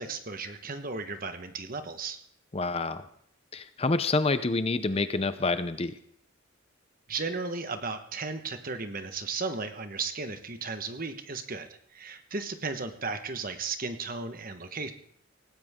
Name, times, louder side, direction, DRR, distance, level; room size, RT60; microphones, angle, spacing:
voice 1, 0.0-2.2 7.1-14.9, right 4 dB, 40° right, 8 dB, 1.3 m, -35 dB
voice 2, 2.5-3.0 3.5-6.0, left 3 dB, 30° left, 12 dB, 0.6 m, -27 dB
18.5 x 16.5 x 3.7 m, 0.63 s
head